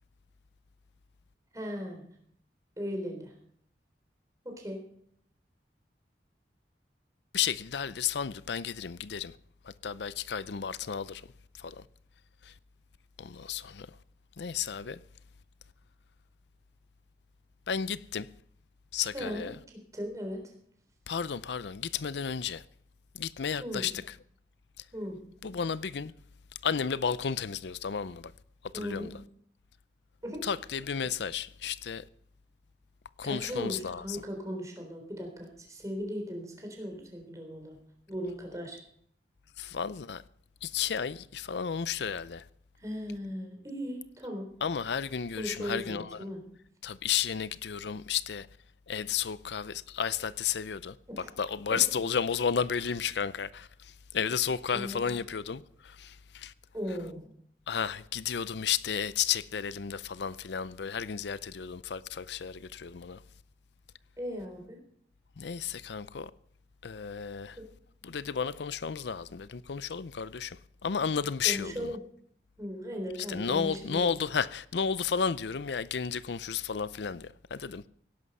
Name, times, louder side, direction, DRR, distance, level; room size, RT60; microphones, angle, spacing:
voice 1, 1.5-2.1 2.8-3.3 4.4-4.8 19.1-19.5 19.9-20.4 23.6-23.9 24.9-25.5 28.7-29.1 30.2-30.4 33.2-37.8 38.1-38.8 42.8-44.5 45.4-46.4 51.1-51.3 51.7-51.8 54.7-55.0 56.7-57.3 64.2-64.8 67.6-67.7 71.4-72.0 72.6-74.1, equal, 20° right, 3.8 m, -37 dB
voice 2, 7.3-9.4 9.6-11.3 11.5-11.9 12.4-12.5 13.2-13.9 14.4-15.0 17.7-18.3 18.9-19.6 21.1-22.6 23.1-24.2 25.4-26.1 26.6-28.3 28.7-29.2 30.4-32.1 33.2-34.2 39.6-40.2 40.6-42.5 44.6-46.2 46.8-48.5 48.9-56.5 57.7-63.2 65.4-66.3 66.8-67.6 68.0-72.0 73.3-77.9, left 7 dB, 80° left, 0.5 m, -33 dB
17.5 x 11.0 x 5.5 m
head